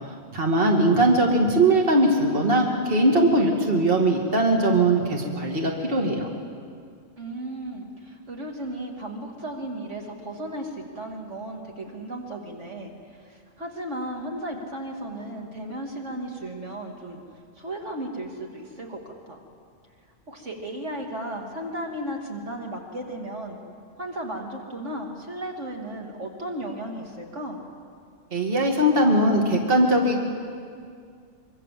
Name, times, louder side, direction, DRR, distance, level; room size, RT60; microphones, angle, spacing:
voice 1, 0.0-6.3 28.3-30.2, right 1 dB, 45° right, 0 dB, 2.6 m, -20 dB
voice 2, 7.2-17.2 17.6-19.0 19.3-19.4 20.3-23.6 24.0-27.6, right 1 dB, 65° right, 1 dB, 2.8 m, -35 dB
25.0 x 24.0 x 7.6 m, 2.2 s
omnidirectional pair, 1.3 m